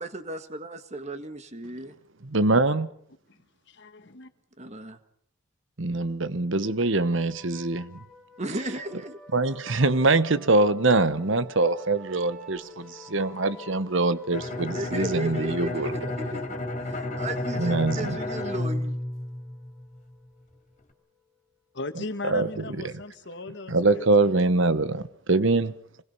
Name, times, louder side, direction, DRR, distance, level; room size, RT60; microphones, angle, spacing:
voice 1, 0.0-2.0 4.6-5.0 8.4-9.2 14.7-16.5 16.8-19.0, right 2 dB, 30° right, 1.7 m, -35 dB
voice 2, 2.2-2.9 5.8-7.9 9.3-15.9 17.6-18.2 22.3-22.5 23.7-25.7, right 3 dB, 60° right, 1.1 m, -23 dB
voice 3, 3.3-4.3 21.7-24.1 25.3-25.6, left 2 dB, 55° left, 1.6 m, -38 dB
sound 1, 6.6-21.9, left 1 dB, ahead, 3.2 m, -50 dB
Bowed string instrument, 14.3-20.0, left 2 dB, 35° left, 3.4 m, -32 dB
26.5 x 21.0 x 5.6 m
head